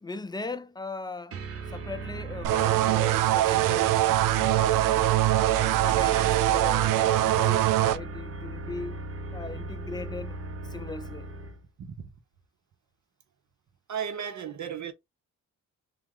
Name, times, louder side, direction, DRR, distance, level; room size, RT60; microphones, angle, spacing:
voice 1, 0.0-1.4 1.7-4.0 4.3-4.9 5.6-9.0 9.3-10.4 10.7-11.3, left 3 dB, 15° left, 0.5 m, -39 dB
sound 1, 1.3-11.6, right 4 dB, 45° right, 0.9 m, -37 dB
sound 2, 2.4-8.0, right 14 dB, 80° right, 0.5 m, -23 dB
voice 2, 11.8-12.1 13.9-14.9, right 8 dB, 60° right, 1.1 m, -35 dB
3.5 x 2.9 x 3.8 m
cardioid pair, 70°, 32 cm